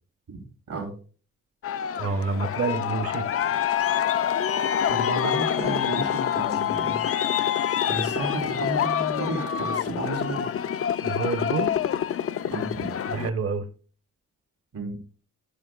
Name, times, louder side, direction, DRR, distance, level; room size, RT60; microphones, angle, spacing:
voice 1, 0.3-0.9 4.9-7.0 7.8-10.5 12.5-12.9 14.7-14.9, right 2 dB, 80° right, 3.7 m, -32 dB
Aircraft, 1.6-13.3, left 9 dB, 45° left, 0.4 m, -26 dB
voice 2, 2.0-3.3 11.0-11.7 13.1-13.6, right 4 dB, 50° right, 1.0 m, -28 dB
15.0 x 6.3 x 2.4 m
cardioid pair, 85°, 31 cm